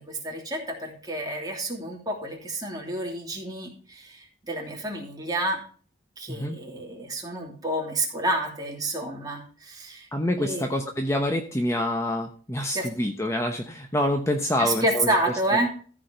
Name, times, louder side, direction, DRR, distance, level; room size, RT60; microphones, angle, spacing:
voice 1, 0.0-5.6 6.2-10.1 10.4-10.7 12.7-12.9 14.6-15.7, right 1 dB, 20° right, -1 dB, 2.9 m, -29 dB
voice 2, 10.1-15.1, left 1 dB, 15° left, 4 dB, 0.9 m, -26 dB
14.5 x 4.9 x 5.6 m, 0.43 s
head